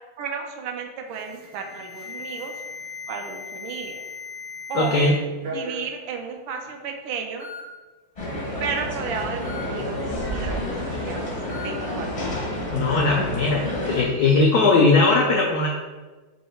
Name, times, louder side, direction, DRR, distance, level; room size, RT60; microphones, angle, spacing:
voice 1, 0.2-2.5 3.1-4.0 4.7-5.0 5.4-7.5 8.6-10.0 10.3-11.3 11.6-12.4, right 6 dB, 80° right, 3 dB, 1.4 m, -33 dB
Alarm, 1.1-5.1 5.4-5.9 6.7-6.8 7.4-7.6 9.5-9.7 11.5-11.7, left 4 dB, 60° right, 1.4 m, -37 dB
voice 2, 4.7-5.1 12.7-15.7, left 3 dB, 85° left, -1 dB, 0.8 m, -19 dB
sound 1, 8.2-14.0, left 1 dB, 45° left, 0.4 m, -29 dB
4.2 x 2.7 x 4.4 m, 1.3 s
omnidirectional pair, 2.3 m